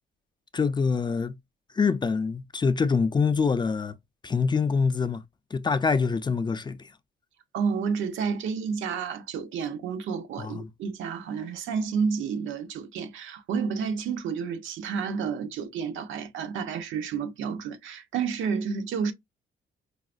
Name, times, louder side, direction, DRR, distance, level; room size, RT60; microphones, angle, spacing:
voice 1, 0.5-1.3 1.7-4.0 4.2-5.2 5.5-6.9 10.4-10.7, left 5 dB, 20° left, 0.3 m, -25 dB
voice 2, 7.5-19.1, right 6 dB, 80° right, 0.7 m, -30 dB
4.7 x 2.0 x 2.4 m
cardioid pair, 90°, 20 cm